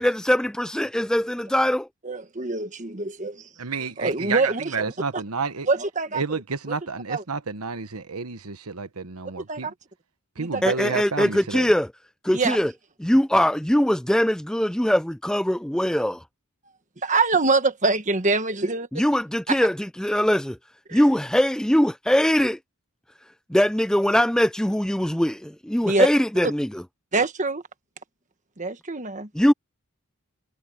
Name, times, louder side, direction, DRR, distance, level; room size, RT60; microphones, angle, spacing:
voice 1, 0.0-1.9 10.6-11.9 12.2-12.7 13.0-16.2 19.0-20.6 20.9-22.6 23.5-26.7 29.3-29.5, equal, 5° left, 0.4 m, -21 dB
voice 2, 2.0-3.5 4.0-4.8 5.7-6.2 6.7-6.8 7.1-7.2 9.4-9.7 10.4-10.7 12.3-12.6 17.0-18.9 19.5-19.6 20.9-21.0 25.8-26.1 27.1-27.6 28.6-29.3, right 3 dB, 35° right, 1.5 m, -24 dB
voice 3, 3.6-5.7 6.1-9.7 10.4-11.7, right 5 dB, 90° right, 1.2 m, -30 dB
head